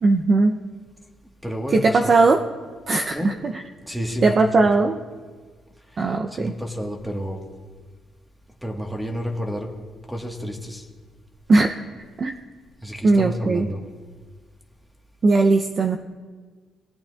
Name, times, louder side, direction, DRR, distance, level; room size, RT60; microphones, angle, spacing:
voice 1, 0.0-0.6 1.7-2.4 2.9-3.5 4.2-5.0 6.0-6.5 11.5-11.7 12.2-12.4 13.0-13.7 15.2-16.0, right 3 dB, 45° right, 4 dB, 0.5 m, -18 dB
voice 2, 1.4-2.1 3.1-3.3 3.9-4.7 6.1-7.4 8.6-9.7 10.1-10.8 12.8-13.8, equal, 5° right, 2 dB, 1.3 m, -30 dB
18.5 x 8.7 x 2.3 m, 1.5 s
cardioid pair, 90°, 0 cm